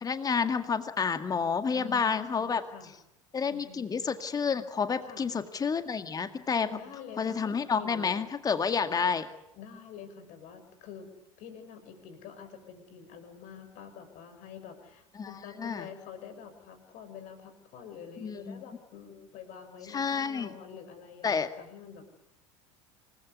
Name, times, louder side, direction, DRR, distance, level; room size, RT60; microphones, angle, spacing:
voice 1, 0.0-2.6 3.3-6.8 7.2-9.3 15.2-15.9 18.2-18.6 19.9-20.5 21.2-21.5, left 6 dB, 20° left, 9 dB, 2.0 m, -29 dB
voice 2, 1.7-2.9 3.5-4.1 5.0-5.3 6.7-8.1 8.9-9.0 9.5-11.1 11.4-22.0, left 7 dB, 50° left, 8 dB, 6.5 m, -47 dB
28.0 x 20.5 x 8.3 m, 0.86 s
figure-of-eight pair, 75°, 17 cm